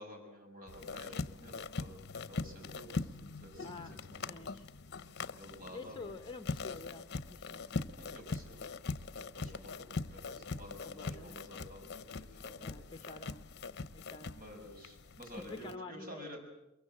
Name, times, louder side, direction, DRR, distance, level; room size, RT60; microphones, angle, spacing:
voice 1, 0.0-4.6 5.4-6.1 8.0-8.6 9.3-13.1 14.3-16.4, equal, 45° right, 3 dB, 6.1 m, -51 dB
sound 1, 0.7-15.8, left 3 dB, 55° left, 0.8 m, -42 dB
voice 2, 3.6-4.7 5.7-7.6 10.8-11.4 12.6-13.5 13.9-14.4 15.5-16.4, left 3 dB, 25° left, 9 dB, 0.9 m, -49 dB
23.0 x 23.0 x 7.7 m, 0.90 s
head